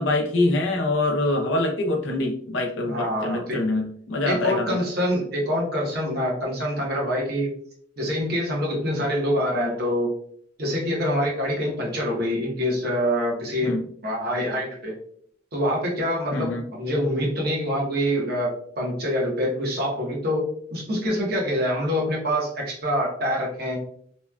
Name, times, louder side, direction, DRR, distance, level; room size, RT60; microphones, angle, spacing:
voice 1, 0.0-4.8 13.6-13.8 16.3-16.7, left 2 dB, 75° left, 2 dB, 0.6 m, -24 dB
voice 2, 2.9-3.6 4.2-7.5 8.0-10.2 10.6-13.7 14.0-15.0 15.5-20.4 20.7-23.8, equal, 55° right, -2 dB, 0.9 m, -25 dB
2.9 x 2.2 x 2.2 m, 0.62 s
head